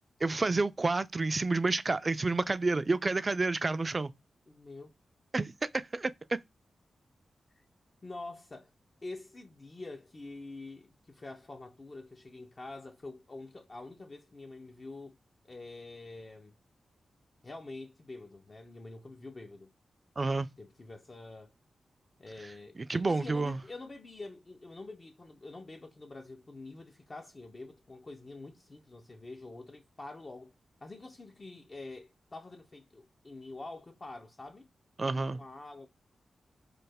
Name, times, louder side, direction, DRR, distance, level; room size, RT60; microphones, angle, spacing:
voice 1, 0.2-4.1 5.3-6.1 20.2-20.5 22.9-23.6 35.0-35.4, right 3 dB, 40° right, 0.3 m, -29 dB
voice 2, 4.5-4.9 7.6-7.7 8.0-8.7 9.0-15.2 15.5-16.5 17.4-19.7 20.6-21.5 22.2-30.5 30.8-34.7 35.0-35.9, left 2 dB, 40° left, 0.5 m, -46 dB
3.2 x 2.0 x 3.4 m
cardioid pair, 55°, 0 cm